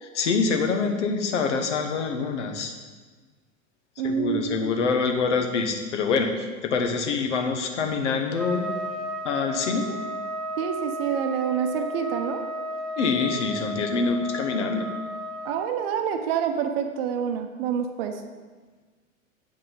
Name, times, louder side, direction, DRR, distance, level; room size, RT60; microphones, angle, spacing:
voice 1, 0.0-2.7 4.0-8.7 9.2-9.9 13.0-14.9, left 4 dB, 60° left, 5 dB, 1.2 m, -25 dB
voice 2, 4.0-4.7 9.8-9.9 10.6-12.4 15.4-18.2, right 7 dB, 45° right, 6 dB, 0.9 m, -27 dB
Trumpet, 8.3-15.7, equal, ahead, 0.4 m, -33 dB
7.9 x 5.6 x 5.1 m, 1.4 s
figure-of-eight pair, 95°, 40 cm